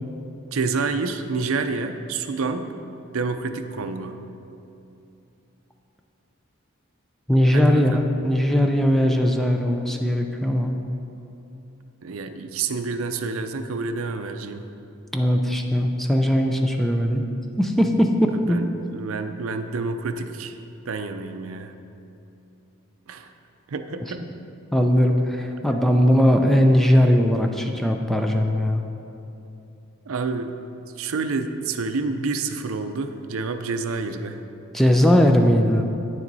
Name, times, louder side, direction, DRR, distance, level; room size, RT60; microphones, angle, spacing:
voice 1, 0.5-2.7 3.1-4.1 7.5-8.0 12.0-14.6 18.5-20.5 20.9-21.7 23.1-23.3 23.7-24.2 25.7-25.8 30.1-30.5 31.0-34.4, right 4 dB, 75° right, 8 dB, 0.5 m, -28 dB
voice 2, 7.3-10.8 15.1-17.2 17.6-18.6 24.7-28.8 34.7-35.8, equal, ahead, 3 dB, 0.4 m, -19 dB
9.6 x 7.4 x 4.0 m, 2.8 s
head